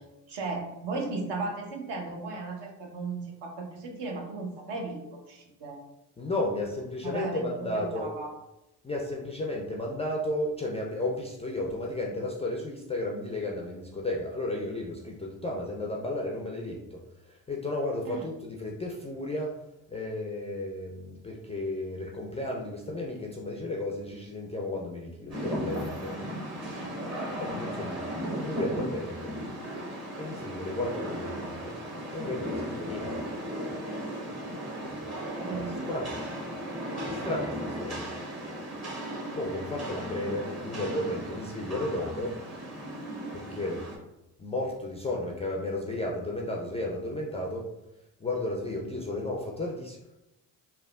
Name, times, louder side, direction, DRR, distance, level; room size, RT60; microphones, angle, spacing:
voice 1, 0.3-5.8 7.0-8.3 18.1-18.2 26.3-26.4 34.7-35.1 35.4-35.8, right 3 dB, 60° right, 2 dB, 0.8 m, -36 dB
voice 2, 6.2-8.1 8.8-17.0 17.3-19.5 19.9-26.2 27.4-28.0 28.4-29.3 30.2-31.7 32.1-33.1 34.8-35.0 35.5-35.6 35.9-36.3 37.1-38.1 39.3-42.3 43.3-43.8 44.4-47.6 48.2-50.0, left 1 dB, 15° left, -2 dB, 0.3 m, -33 dB
Rain, 25.3-44.0, equal, 30° right, 1.1 m, -36 dB
3.2 x 2.2 x 2.3 m, 0.92 s
hypercardioid pair, 50°, 47 cm